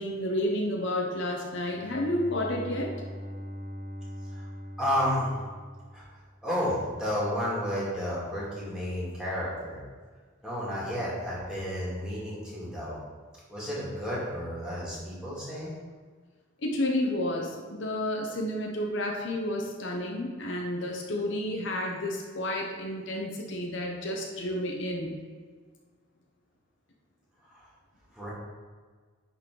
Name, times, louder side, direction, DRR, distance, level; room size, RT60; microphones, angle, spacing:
voice 1, 0.0-2.9 16.6-25.1, left 1 dB, 65° left, 0 dB, 1.0 m, -31 dB
Bowed string instrument, 1.4-6.4, equal, 45° right, 1.3 m, -41 dB
voice 2, 4.8-5.3 5.9-9.8 10.4-13.0 13.5-15.7 27.5-27.7 28.1-28.3, equal, 5° right, -8 dB, 2.3 m, -32 dB
10.5 x 4.3 x 3.9 m, 1.5 s
head